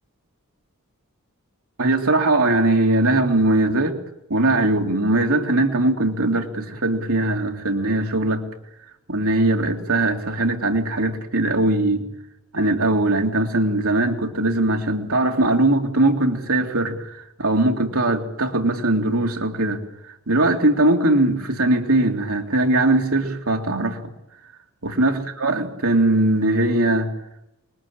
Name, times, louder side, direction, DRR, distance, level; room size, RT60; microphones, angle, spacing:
voice 1, 1.8-4.0 4.3-8.5 9.1-12.1 12.5-24.1 24.8-27.1, right 2 dB, 70° right, 3.3 m, -20 dB
28.0 x 22.5 x 8.9 m
head